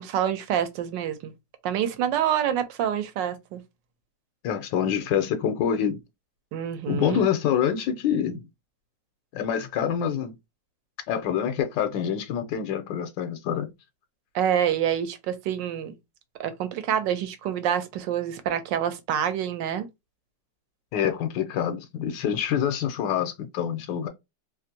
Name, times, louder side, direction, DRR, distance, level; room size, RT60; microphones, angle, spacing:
voice 1, 0.0-1.3 1.6-3.6 6.5-7.2 14.3-15.9 16.4-19.9, right 9 dB, 90° right, 1.3 m, -27 dB
voice 2, 4.4-6.0 6.9-8.4 9.3-10.3 11.1-13.7 20.9-24.1, left 8 dB, 90° left, 1.3 m, -26 dB
3.2 x 2.5 x 2.7 m
omnidirectional pair, 1.9 m